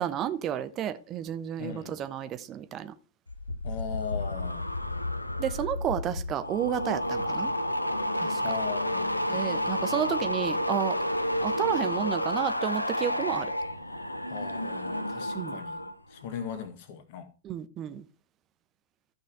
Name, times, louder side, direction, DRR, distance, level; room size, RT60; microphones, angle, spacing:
voice 1, 0.0-2.9 5.4-7.5 8.1-8.4 9.3-11.0 11.4-13.5 15.3-15.6 17.4-18.0, right 10 dB, 30° right, 0.9 m, -31 dB
voice 2, 1.6-2.0 3.6-4.7 8.4-9.2 14.3-17.3, left 8 dB, 45° left, 1.9 m, -39 dB
sound 1, 3.3-15.9 16.2-16.7, left 1 dB, 85° left, 0.8 m, -31 dB
14.0 x 6.0 x 4.8 m
figure-of-eight pair, 100°, 0 cm